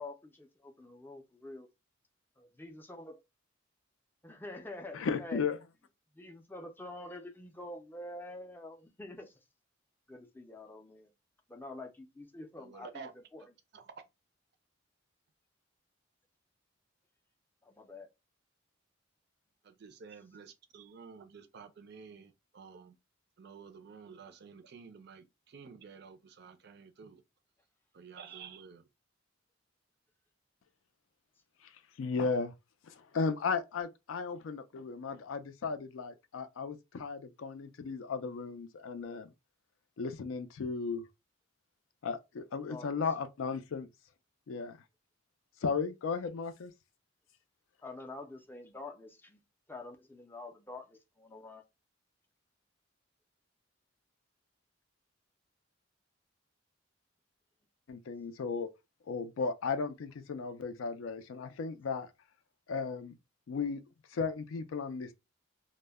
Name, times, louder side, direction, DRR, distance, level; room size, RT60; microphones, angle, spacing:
voice 1, 0.0-1.7 2.4-3.2 4.2-5.4 6.1-9.4 10.1-11.1 11.5-13.5 17.6-18.1 42.7-43.1 47.8-49.4 49.7-51.6, left 2 dB, 10° left, 0.4 m, -47 dB
voice 2, 4.9-5.6 32.0-32.5 32.9-39.3 40.0-41.0 42.0-43.9 44.5-44.8 45.6-46.7 57.9-58.7 59.1-62.1 62.7-63.1 63.5-63.8 64.1-65.1, left 5 dB, 80° left, 0.4 m, -35 dB
voice 3, 12.6-13.1 13.4-13.5 13.7-13.9 19.6-23.0 23.4-27.2 27.9-28.9, right 6 dB, 55° right, 0.4 m, -51 dB
2.1 x 2.0 x 3.3 m
head